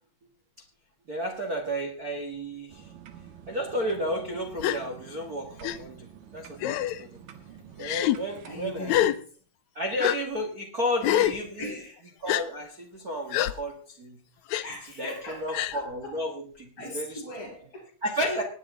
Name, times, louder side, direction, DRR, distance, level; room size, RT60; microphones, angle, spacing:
voice 1, 1.1-2.9 3.5-7.2 7.8-9.1 9.7-11.7 12.2-14.2 15.0-17.2 18.0-18.4, equal, 35° right, 1.5 m, -32 dB
sound 1, 2.7-8.6, right 8 dB, 75° right, 2.8 m, -49 dB
Gasp, 4.6-4.8 5.6-5.8 6.6-7.0 7.8-8.2 8.9-9.2 10.0-10.2 11.0-11.4 12.3-12.4 13.3-13.5 14.5-14.6 15.5-15.8, left 13 dB, 85° left, 1.6 m, -25 dB
voice 2, 8.4-9.1 11.5-12.1 14.6-16.2 16.8-17.8, left 1 dB, 45° left, 7.9 m, -39 dB
19.5 x 10.0 x 3.7 m
omnidirectional pair, 4.1 m